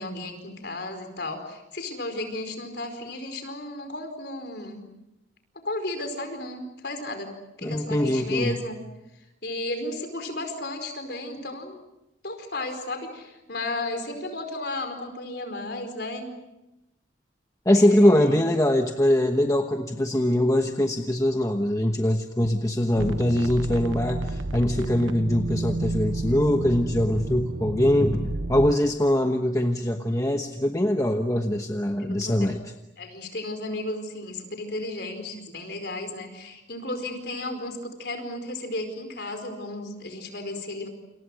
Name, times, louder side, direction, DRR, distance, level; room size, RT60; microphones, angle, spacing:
voice 1, 0.0-4.9 5.5-8.8 9.4-11.8 12.2-16.3 17.7-18.4 32.0-32.5 33.0-40.9, left 2 dB, 55° left, 6 dB, 4.8 m, -34 dB
voice 2, 7.6-8.6 17.6-32.6, left 1 dB, 15° left, 4 dB, 1.1 m, -22 dB
sound 1, 23.0-28.8, right 2 dB, 85° right, 1.2 m, -31 dB
29.0 x 28.0 x 6.4 m, 0.92 s
head